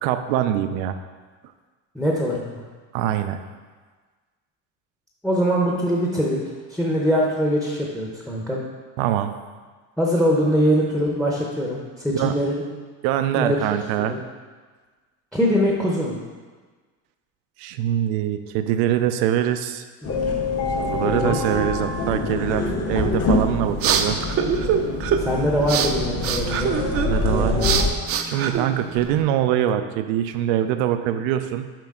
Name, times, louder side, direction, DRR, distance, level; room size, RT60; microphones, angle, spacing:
voice 1, 0.0-1.0 2.9-3.4 9.0-9.3 12.1-12.3 13.0-14.1 17.6-19.8 20.8-24.2 26.9-27.6 28.3-31.7, right 11 dB, 80° right, 9 dB, 0.6 m, -23 dB
voice 2, 1.9-2.6 5.2-6.4 6.7-8.6 10.0-12.6 13.3-13.6 13.9-14.2 15.3-16.2 20.0-20.4 21.1-21.3 25.2-26.8 27.3-27.7, equal, ahead, -2 dB, 0.7 m, -23 dB
sound 1, 20.0-27.9, left 3 dB, 40° left, 1.0 m, -25 dB
sound 2, 23.3-29.2, right 7 dB, 35° right, 0.5 m, -25 dB
7.5 x 5.0 x 3.7 m, 1.4 s
cardioid pair, 125°, 39 cm